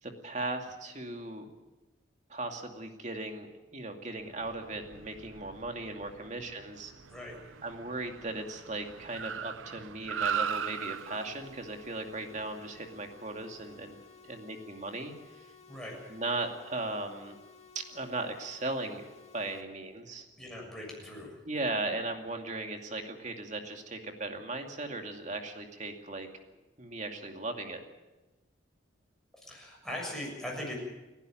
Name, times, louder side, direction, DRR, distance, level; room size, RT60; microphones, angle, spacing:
voice 1, 0.0-1.5 2.3-6.9 7.6-14.0 14.2-15.5 16.1-17.3 17.7-19.0 19.3-20.3 21.4-26.3 26.8-27.8, right 2 dB, 35° right, 4 dB, 2.4 m, -37 dB
Car, 4.3-13.8, right 7 dB, 85° right, 0.7 m, -40 dB
sound 1, 10.6-19.6, left 5 dB, 35° left, 2.2 m, -56 dB
voice 2, 20.4-21.4 29.4-30.7, left 1 dB, ahead, -2 dB, 6.9 m, -40 dB
30.0 x 11.5 x 9.2 m, 1.1 s
head